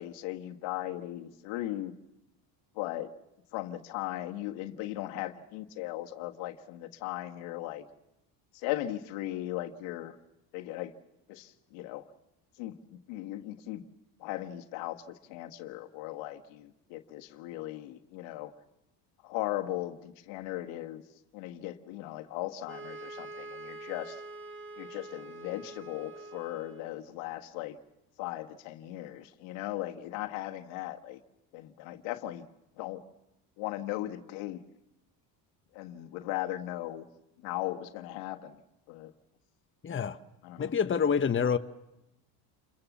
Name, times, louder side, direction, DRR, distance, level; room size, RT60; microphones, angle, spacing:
voice 1, 0.0-1.9 2.7-3.1 3.5-7.8 8.5-10.1 10.5-10.9 11.3-12.0 12.6-13.8 14.2-15.0 15.3-18.5 19.2-21.0 21.3-24.2 24.8-27.8 28.2-31.2 31.5-32.5 32.8-33.0 33.6-34.6 35.7-37.1 37.4-38.6 38.9-39.1 39.9-40.1 40.4-40.7, left 15 dB, 85° left, 1.6 m, -37 dB
sound 1, 22.7-27.1, right 2 dB, 25° right, 2.1 m, -45 dB
voice 2, 39.8-40.2 40.6-41.6, left 7 dB, 25° left, 1.1 m, -27 dB
28.5 x 22.5 x 7.1 m
supercardioid pair, 90°, 47 cm